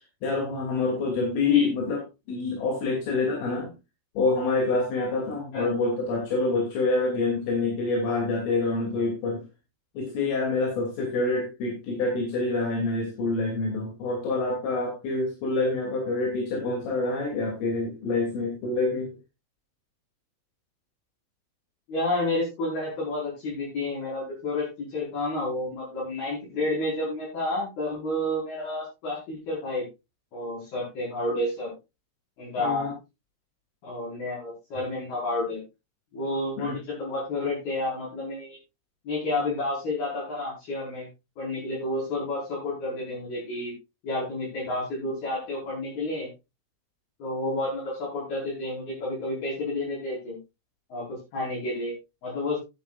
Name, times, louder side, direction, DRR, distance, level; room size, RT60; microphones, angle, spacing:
voice 1, 0.2-2.0 2.3-3.7 4.2-9.4 10.0-19.1 32.6-32.9 36.6-36.8, left 3 dB, 75° left, -1 dB, 5.5 m, -27 dB
voice 2, 21.9-29.9 30.3-31.7 32.4-32.8 33.8-35.6 36.1-38.6 39.1-41.1 41.4-43.7 44.0-46.3 47.2-50.4 50.9-52.0 52.2-52.6, left 2 dB, 50° left, -8 dB, 6.9 m, -30 dB
15.5 x 10.0 x 2.5 m, 0.26 s
omnidirectional pair, 5.8 m